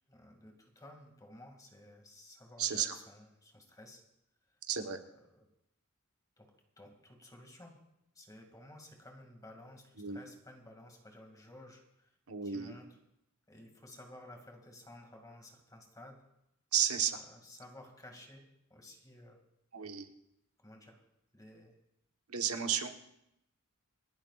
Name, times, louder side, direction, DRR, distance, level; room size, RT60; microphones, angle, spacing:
voice 1, 0.1-4.0 4.5-4.6 5.3-5.5 6.4-6.5 6.8-7.8 8.1-12.1 12.4-13.0 13.5-16.2 17.3-19.4 20.6-21.0 21.3-21.8, left 1 dB, 15° left, 2 dB, 2.3 m, -54 dB
voice 2, 2.6-2.9 4.7-5.0 10.0-10.2 12.3-12.7 16.7-17.2 19.7-20.1 22.3-22.9, right 8 dB, 85° right, 5 dB, 1.2 m, -32 dB
28.0 x 11.0 x 2.5 m, 0.82 s
head